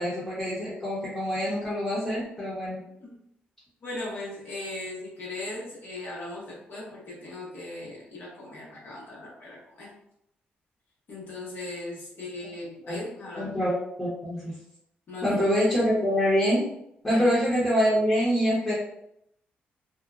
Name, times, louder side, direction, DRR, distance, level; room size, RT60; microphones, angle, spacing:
voice 1, 0.0-2.8 12.8-13.0 13.4-14.5 15.2-16.7 17.0-18.7, equal, 15° left, -10 dB, 1.1 m, -25 dB
voice 2, 3.8-9.9 11.1-13.5 15.1-15.4 17.1-17.2, left 2 dB, 55° left, -4 dB, 1.1 m, -38 dB
2.6 x 2.1 x 2.4 m, 0.76 s
cardioid pair, 80°, 4 cm